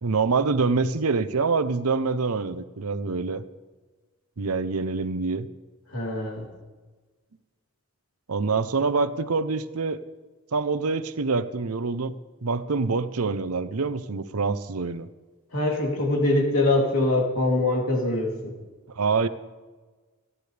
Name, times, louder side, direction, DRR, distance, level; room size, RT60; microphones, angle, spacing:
voice 1, 0.0-3.4 4.4-5.5 8.3-10.0 10.5-15.1 19.0-19.3, right 4 dB, 90° right, 12 dB, 0.8 m, -25 dB
voice 2, 5.9-6.5 15.5-18.5, left 2 dB, 75° left, -1 dB, 3.3 m, -23 dB
29.0 x 11.0 x 3.4 m, 1.3 s
head